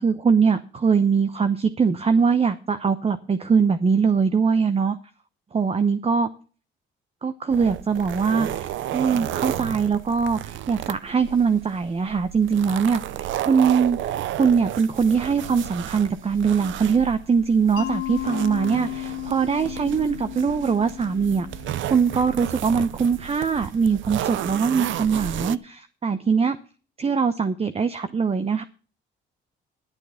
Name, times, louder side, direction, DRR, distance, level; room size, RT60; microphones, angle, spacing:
voice 1, 0.0-5.0 5.5-6.3 7.2-21.5 21.9-26.6 27.0-28.6, right 5 dB, 30° right, 10 dB, 0.9 m, -22 dB
sound 1, 7.5-25.6, right 12 dB, 75° right, 0.6 m, -33 dB
Mallet percussion, 17.8-22.5, left 18 dB, 80° left, 1.4 m, -34 dB
11.5 x 8.4 x 5.7 m, 0.39 s
cardioid pair, 90°, 20 cm